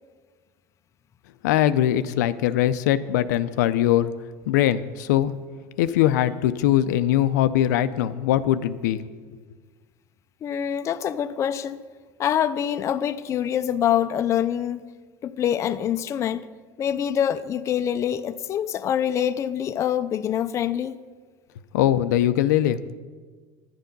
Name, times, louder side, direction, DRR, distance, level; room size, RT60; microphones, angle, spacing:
voice 1, 1.4-4.1 4.5-5.3 5.8-9.0 21.7-22.9, left 12 dB, 85° left, 0.5 m, -21 dB
voice 2, 10.4-11.8 12.2-14.8 15.2-16.5 16.8-21.0, left 9 dB, 30° left, 0.5 m, -25 dB
10.5 x 9.1 x 5.3 m
supercardioid pair, 120°, 9 cm